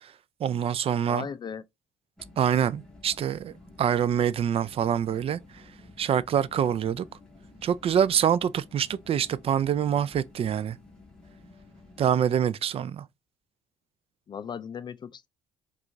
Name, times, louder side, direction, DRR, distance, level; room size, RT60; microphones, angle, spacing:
voice 1, 0.4-1.3 2.4-5.4 6.0-7.1 7.6-10.8 12.0-13.0, right 9 dB, 45° right, 0.4 m, -25 dB
voice 2, 1.1-1.6 14.3-15.3, left 7 dB, 30° left, 0.3 m, -37 dB
sound 1, 2.2-12.3, left 2 dB, 5° left, 1.4 m, -52 dB
4.9 x 2.4 x 2.5 m
supercardioid pair, 85°, 14 cm